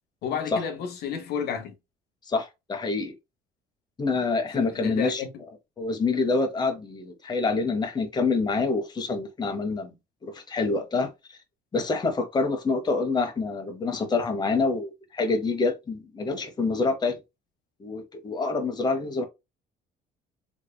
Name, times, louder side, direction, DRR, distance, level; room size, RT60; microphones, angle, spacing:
voice 1, 0.2-1.7 4.5-5.3, left 7 dB, 70° left, 0.9 m, -31 dB
voice 2, 2.3-3.1 4.0-5.2 5.8-9.9 10.2-11.1 11.7-17.2 17.8-19.3, left 3 dB, 25° left, 1.0 m, -26 dB
3.6 x 3.3 x 2.2 m
cardioid pair, 110°, 17 cm